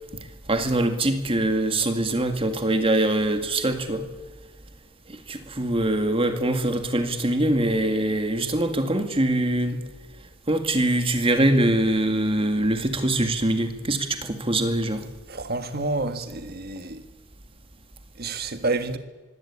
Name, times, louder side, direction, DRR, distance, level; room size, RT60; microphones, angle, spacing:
voice 1, 0.5-4.1 5.1-9.8 10.5-15.1, right 1 dB, 25° right, 2.0 m, -23 dB
voice 2, 15.3-17.0 18.2-19.0, right 2 dB, 50° right, 1.7 m, -29 dB
24.0 x 17.0 x 8.6 m
head